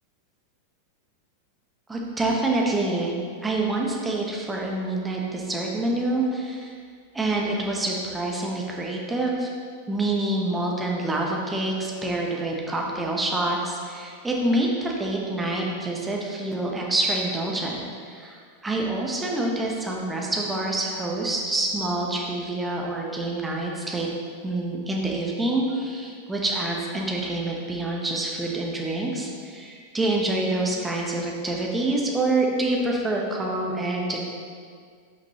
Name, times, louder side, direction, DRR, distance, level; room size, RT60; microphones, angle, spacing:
voice 1, 1.9-3.2 3.4-6.7 7.1-9.5 9.9-24.1 24.4-34.2, right 2 dB, 10° right, -1 dB, 1.0 m, -26 dB
7.9 x 5.8 x 2.9 m, 2.1 s
figure-of-eight pair, 90°, 0 cm